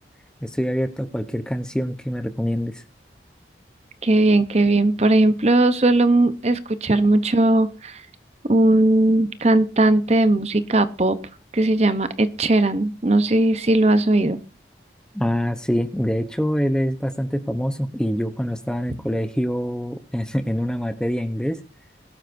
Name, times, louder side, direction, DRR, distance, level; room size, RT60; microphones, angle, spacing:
voice 1, 0.4-2.8 15.1-21.6, equal, 5° left, 9 dB, 0.8 m, -25 dB
voice 2, 4.0-8.0 8.5-11.2 11.5-14.4, right 2 dB, 35° right, 12 dB, 0.8 m, -18 dB
20.5 x 12.0 x 2.7 m, 0.33 s
head